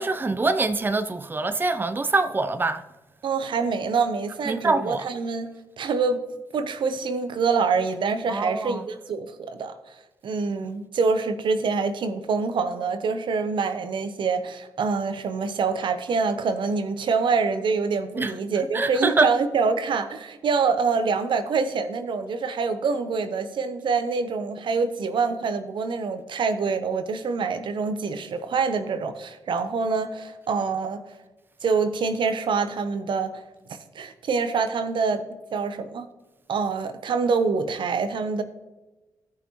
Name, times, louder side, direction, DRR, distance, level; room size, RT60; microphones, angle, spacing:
voice 1, 0.0-2.8 4.4-5.1 8.3-8.8 18.2-19.4, right 3 dB, 25° right, 0.6 m, -25 dB
voice 2, 3.2-5.5 5.8-6.2 6.5-10.0 10.2-31.0 31.6-33.4 33.9-35.2 35.5-36.1 36.5-38.4, right 5 dB, 65° right, 0.8 m, -25 dB
14.0 x 5.7 x 3.0 m
supercardioid pair, 45°, 9 cm